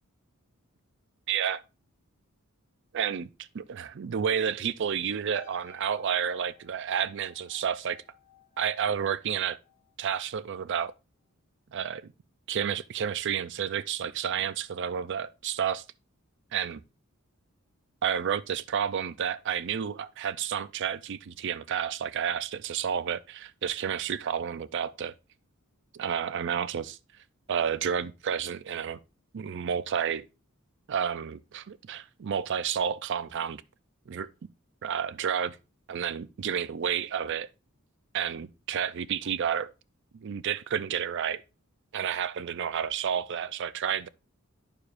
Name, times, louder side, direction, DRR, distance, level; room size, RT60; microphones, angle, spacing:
voice 1, 1.3-1.6 2.9-8.0 8.6-9.6 10.0-10.9 11.7-12.1 12.5-15.8 16.5-16.8 18.0-25.1 25.9-27.0 27.5-29.0 29.3-30.2 30.9-33.6 34.1-34.3 34.8-35.6 35.9-37.5 38.1-39.7 40.1-41.4 41.9-44.1, right 8 dB, 55° right, 0.4 m, -30 dB
sound 1, 5.3-10.0 10.2-10.6, left 8 dB, 35° left, 0.8 m, -58 dB
9.6 x 6.8 x 2.5 m
head